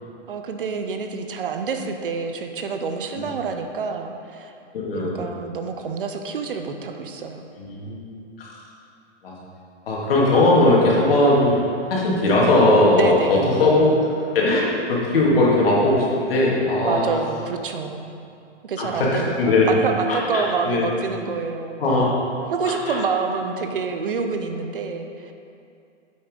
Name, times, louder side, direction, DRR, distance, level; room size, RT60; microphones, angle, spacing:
voice 1, 0.3-4.5 5.0-7.4 12.9-13.5 16.8-18.1 18.6-21.8 22.5-25.3, right 5 dB, 45° right, 5 dB, 0.7 m, -27 dB
voice 2, 4.7-5.2 7.6-8.5 9.2-9.3 9.9-11.6 11.9-13.9 14.3-17.1 18.8-19.7 20.1-20.9 21.8-22.1 22.6-23.0, left 2 dB, 50° left, -5 dB, 2.4 m, -19 dB
8.0 x 6.7 x 5.2 m, 2.5 s
hypercardioid pair, 175°, 36 cm